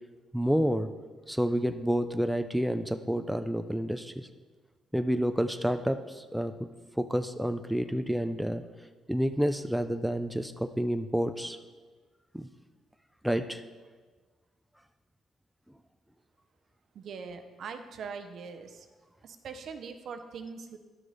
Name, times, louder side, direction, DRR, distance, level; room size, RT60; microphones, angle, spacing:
voice 1, 0.3-0.9 1.3-4.3 4.9-6.7 7.0-8.6 9.1-11.6 12.3-12.5 13.2-13.6, equal, ahead, 8 dB, 0.4 m, -29 dB
voice 2, 16.9-18.9 19.2-20.8, right 5 dB, 65° right, 7 dB, 0.8 m, -42 dB
11.0 x 6.3 x 4.0 m, 1.4 s
cardioid pair, 90°, 0 cm